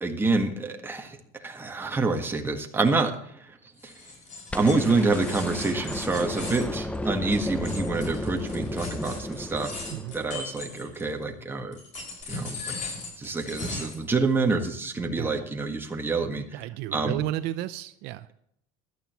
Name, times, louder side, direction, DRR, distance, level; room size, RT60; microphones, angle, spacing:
voice 1, 0.0-3.1 3.4-3.6 3.8-3.9 4.5-9.7 10.1-11.8 12.3-12.8 13.2-16.6 16.9-17.2, right 3 dB, 10° right, 3 dB, 1.6 m, -27 dB
sound 1, 3.8-11.2 11.7-14.1, left 3 dB, 45° left, 5.3 m, -38 dB
sound 2, 4.5-10.7 12.2-12.3, left 1 dB, 5° left, 0.6 m, -34 dB
voice 2, 16.5-18.3, right 15 dB, 65° right, 12 dB, 0.6 m, -33 dB
16.5 x 11.5 x 3.1 m, 0.72 s
cardioid pair, 135°, 18 cm